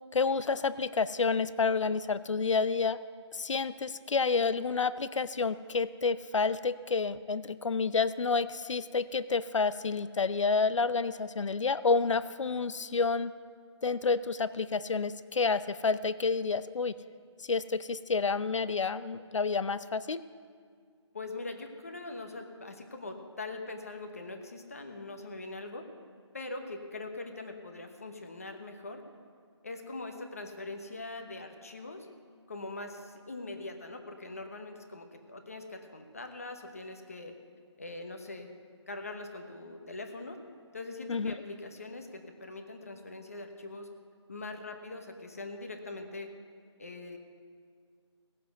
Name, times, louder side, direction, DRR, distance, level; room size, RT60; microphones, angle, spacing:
voice 1, 0.1-3.0 3.3-13.3 13.8-16.9 17.4-20.2 41.1-41.3, left 4 dB, 80° left, 15 dB, 0.6 m, -29 dB
voice 2, 21.1-25.8 26.3-29.0 29.6-32.1 32.5-37.3 37.8-38.5 38.9-40.4 40.7-43.9 44.3-46.3 46.8-47.2, left 2 dB, 30° left, 5 dB, 1.0 m, -42 dB
17.5 x 7.7 x 7.9 m, 2.1 s
hypercardioid pair, 180°, 15 cm